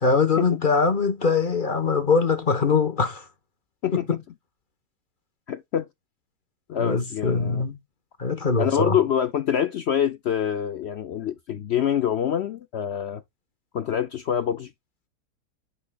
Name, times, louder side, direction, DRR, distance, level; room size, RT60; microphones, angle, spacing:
voice 1, 0.0-3.3 3.9-4.2 6.7-7.8 8.2-9.0, left 4 dB, 35° left, 1.1 m, -22 dB
voice 2, 5.5-5.9 6.7-7.6 8.6-13.2 13.7-14.7, left 9 dB, 75° left, 0.6 m, -25 dB
8.8 x 5.6 x 2.3 m
omnidirectional pair, 1.8 m